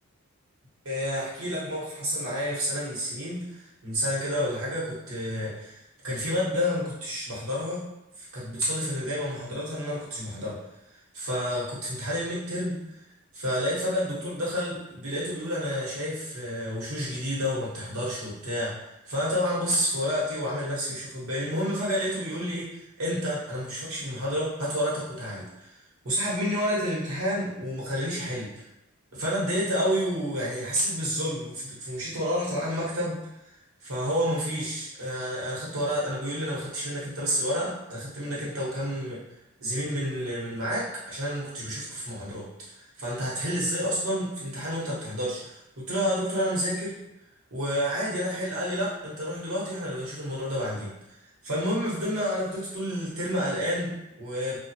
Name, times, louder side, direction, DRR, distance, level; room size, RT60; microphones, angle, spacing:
voice 1, 0.8-5.8 6.0-7.8 8.2-10.6 11.1-12.8 13.3-18.7 19.1-22.7 23.0-25.7 26.0-28.5 29.1-33.2 33.8-39.2 39.6-42.4 42.8-47.0 47.5-50.9 51.4-54.6, equal, 80° right, -7 dB, 1.0 m, -29 dB
2.6 x 2.3 x 2.7 m, 0.86 s
head